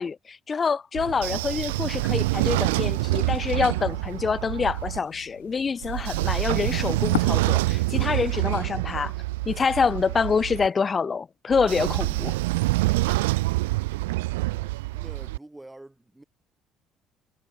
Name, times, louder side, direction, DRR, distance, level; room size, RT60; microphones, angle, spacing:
voice 1, 0.0-9.1 9.5-12.4, left 5 dB, 35° left, 0.5 m, -26 dB
Train / Sliding door, 1.0-5.0 5.8-10.7 11.5-15.4, right 21 dB, 80° right, 0.3 m, -26 dB
sound 1, 1.3-7.2, left 14 dB, 85° left, 1.3 m, -40 dB
voice 2, 14.5-16.2, right 1 dB, 10° right, 4.7 m, -47 dB
hypercardioid pair, 60°, 0 cm